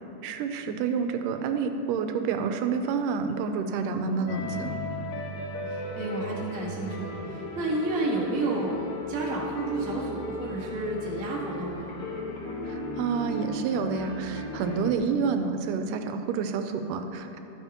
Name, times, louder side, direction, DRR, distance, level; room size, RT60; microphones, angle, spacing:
voice 1, 0.2-4.8 12.7-17.4, right 5 dB, 90° right, 7 dB, 2.2 m, -29 dB
voice 2, 3.9-4.5 5.7-8.7 9.1-11.9, right 2 dB, 45° right, -4 dB, 1.1 m, -31 dB
sound 1, 4.3-15.0, left 1 dB, 70° left, 2.1 m, -36 dB
12.5 x 9.0 x 2.9 m, 2.9 s
omnidirectional pair, 3.7 m